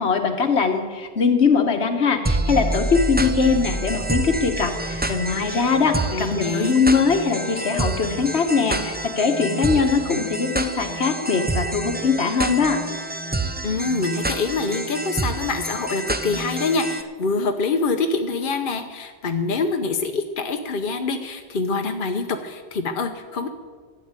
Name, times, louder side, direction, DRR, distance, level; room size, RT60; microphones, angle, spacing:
voice 1, 0.0-12.8, left 5 dB, 75° left, 6 dB, 1.5 m, -21 dB
sound 1, 2.3-17.0, right 2 dB, 10° right, 0.5 m, -28 dB
voice 2, 6.1-6.8 13.6-23.5, left 3 dB, 55° left, 5 dB, 1.0 m, -25 dB
13.0 x 8.0 x 8.9 m, 1.5 s
omnidirectional pair, 1.1 m